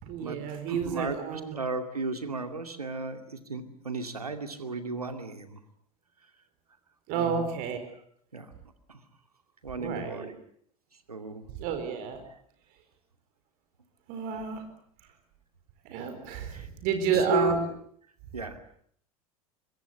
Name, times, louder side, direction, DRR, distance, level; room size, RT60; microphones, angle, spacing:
voice 1, 0.0-1.5 7.1-7.8 9.8-10.3 11.6-12.2 14.1-14.6 15.8-17.6, right 6 dB, 50° right, 7 dB, 4.5 m, -30 dB
voice 2, 0.7-5.6 7.1-7.5 8.3-8.5 8.9-9.0 9.6-10.3 11.1-11.4 16.5-16.7 17.0-17.6 18.3-18.6, right 3 dB, 85° right, 8 dB, 2.4 m, -34 dB
25.0 x 22.5 x 8.0 m, 0.63 s
figure-of-eight pair, 80°, 19 cm